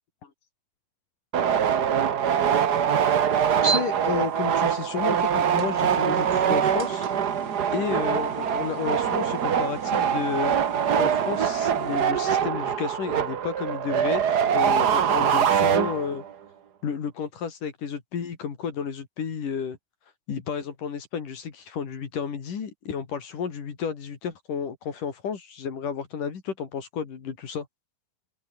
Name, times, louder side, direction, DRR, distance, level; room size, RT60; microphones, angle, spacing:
sound 1, 1.3-16.3, right 8 dB, 80° right, 0.9 m, -24 dB
sound 2, 3.1-12.0, right 6 dB, 35° right, 2.1 m, -36 dB
voice 1, 3.6-7.1 7.7-10.6 11.0-14.2 14.5-16.2 16.8-19.8 20.3-27.7, left 7 dB, 70° left, 4.6 m, -32 dB
open air
omnidirectional pair, 3.8 m